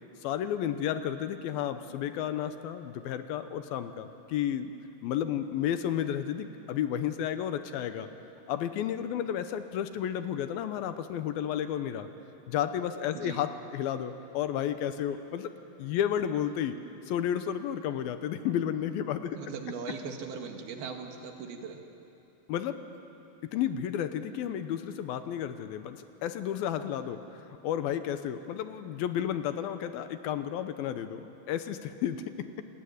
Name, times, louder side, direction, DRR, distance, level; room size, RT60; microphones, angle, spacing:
voice 1, 0.2-4.7 5.0-8.1 8.5-12.1 12.5-15.5 15.8-16.8 17.1-19.4 22.5-22.8 23.4-27.2 27.6-32.6, left 10 dB, 75° left, 10 dB, 2.7 m, -32 dB
voice 2, 19.3-21.8, right 5 dB, 75° right, 3 dB, 3.8 m, -39 dB
28.5 x 20.0 x 9.6 m, 3.0 s
omnidirectional pair, 4.5 m